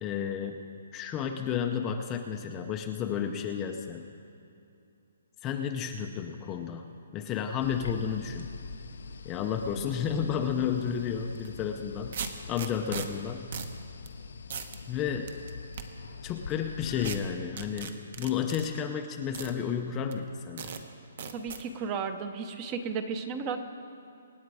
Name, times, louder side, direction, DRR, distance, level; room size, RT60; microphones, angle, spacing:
voice 1, 0.0-0.6 0.9-4.0 5.4-6.9 7.1-8.5 9.2-12.2 12.5-13.5 14.9-15.3 16.2-20.7, left 8 dB, 15° left, 4 dB, 0.5 m, -32 dB
sound 1, 7.6-17.2, left 5 dB, 70° left, 0.6 m, -43 dB
sound 2, 11.3-11.5 12.1-13.1 13.5-13.7 14.1-14.2 14.5-14.8 15.3-15.8 17.0-17.2 17.6-18.7 19.3-19.5 20.1-20.2 20.6-20.8 21.2-21.6, right 6 dB, 45° right, 1.0 m, -37 dB
voice 2, 21.3-23.6, right 5 dB, 20° right, 9 dB, 0.8 m, -34 dB
25.0 x 9.5 x 4.8 m, 2.7 s
hypercardioid pair, 170°, 0 cm